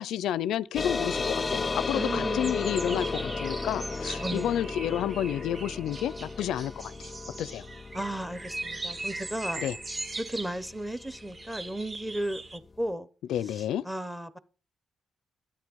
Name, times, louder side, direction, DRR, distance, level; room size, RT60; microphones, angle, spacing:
voice 1, 0.0-7.1 7.4-7.7 9.6-9.8 13.3-13.9, left 10 dB, 85° left, 0.5 m, -30 dB
sound 1, 0.7-11.7, left 4 dB, 25° left, 0.6 m, -34 dB
voice 2, 1.9-3.4 4.2-4.6 7.9-9.6 10.2-13.1 13.6-14.4, right 1 dB, 5° right, 0.9 m, -35 dB
sound 2, 2.3-12.6, right 2 dB, 25° right, 1.2 m, -40 dB
13.0 x 8.8 x 5.3 m
cardioid pair, 135°, 0 cm